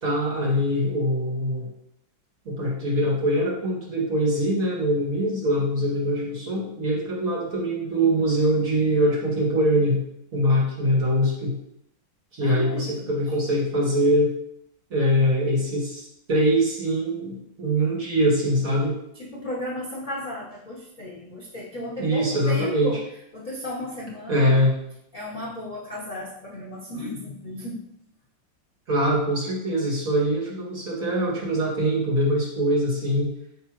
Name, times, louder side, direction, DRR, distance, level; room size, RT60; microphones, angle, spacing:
voice 1, 0.0-1.7 2.5-10.0 10.3-11.6 12.3-14.3 14.9-19.0 22.0-23.0 24.3-24.7 28.9-33.3, equal, 45° right, -5 dB, 2.0 m, -23 dB
voice 2, 12.4-13.1 19.2-23.0 23.3-24.6 25.1-27.8, left 1 dB, 70° left, -4 dB, 0.4 m, -34 dB
9.5 x 3.2 x 3.0 m, 0.77 s
omnidirectional pair, 2.2 m